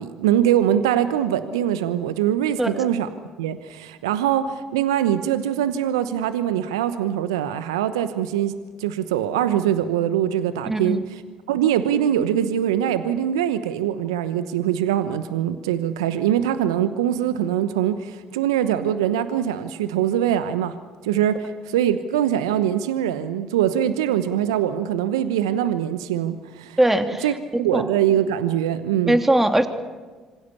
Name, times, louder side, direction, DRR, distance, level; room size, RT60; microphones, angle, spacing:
voice 1, 0.0-3.1 3.4-11.2 11.5-20.8 21.0-26.8 27.2-29.2, right 10 dB, 80° right, 12 dB, 1.0 m, -23 dB
voice 2, 10.7-11.0 26.8-27.3 27.7-27.9 29.1-29.7, right 1 dB, 10° right, 6 dB, 2.9 m, -20 dB
26.5 x 25.5 x 7.1 m, 1.4 s
hypercardioid pair, 50°, 3 cm